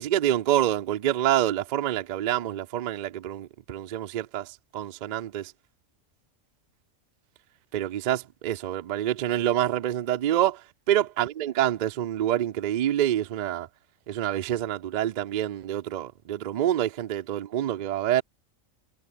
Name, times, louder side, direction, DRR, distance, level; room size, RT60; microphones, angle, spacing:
voice 1, 0.0-5.5 7.7-13.7 14.1-18.2, right 12 dB, 85° right, 0.4 m, -27 dB
omnidirectional pair, 1.4 m